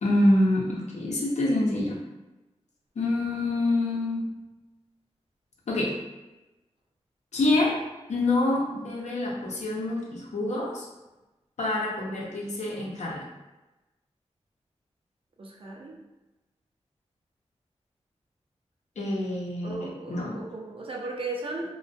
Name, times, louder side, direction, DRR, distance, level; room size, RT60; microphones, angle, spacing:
voice 1, 0.0-2.0 3.0-4.3 5.7-6.0 7.3-7.8 8.1-10.9 11.6-13.2 19.0-20.4, left 1 dB, 75° left, -3 dB, 0.6 m, -26 dB
voice 2, 15.4-16.0 19.6-21.8, right 2 dB, 50° right, 0 dB, 0.5 m, -36 dB
2.2 x 2.2 x 2.5 m, 1.0 s
cardioid pair, 60°, 12 cm